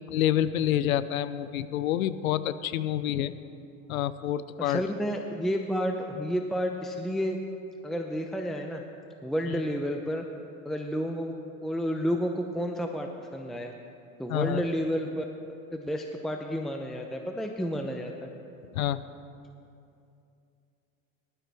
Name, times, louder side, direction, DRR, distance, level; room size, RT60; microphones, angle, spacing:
voice 1, 0.1-3.3 3.9-4.8 14.3-14.6 18.7-19.0, left 11 dB, 90° left, 15 dB, 0.6 m, -27 dB
voice 2, 4.6-7.4 7.8-8.8 9.2-10.2 10.6-11.3 11.6-13.7 14.2-15.2 15.7-18.3, equal, ahead, 3 dB, 0.6 m, -31 dB
19.0 x 12.5 x 3.5 m, 2.6 s
hypercardioid pair, 100°, 40 cm